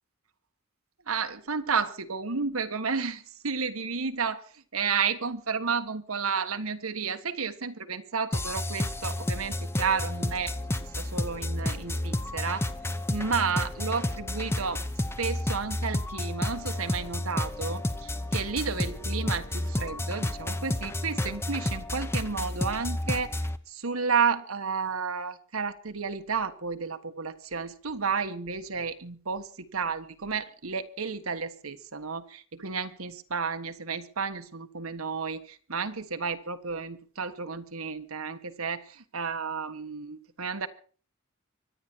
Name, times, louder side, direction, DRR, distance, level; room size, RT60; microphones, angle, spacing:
voice 1, 1.1-12.6 13.1-14.8 15.2-23.4 23.7-40.7, right 5 dB, 85° right, 1.4 m, -32 dB
sound 1, 8.3-23.6, left 1 dB, 10° left, 0.9 m, -31 dB
25.0 x 10.0 x 4.6 m
head